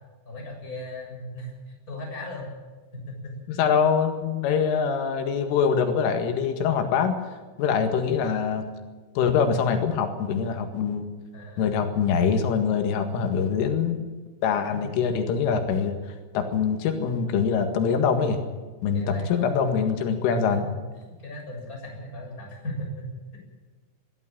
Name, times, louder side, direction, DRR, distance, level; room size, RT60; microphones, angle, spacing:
voice 1, 0.3-2.5 2.9-3.6 7.6-7.9 11.3-11.7 14.7-14.8 18.9-19.7 20.5-20.7 21.0-23.4, left 1 dB, 15° left, 0 dB, 7.6 m, -37 dB
voice 2, 3.5-8.7 9.2-11.1 11.6-14.0 14.4-18.4 18.8-20.6, left 6 dB, 90° left, 6 dB, 4.4 m, -24 dB
22.5 x 14.5 x 9.0 m, 1.3 s
omnidirectional pair, 5.6 m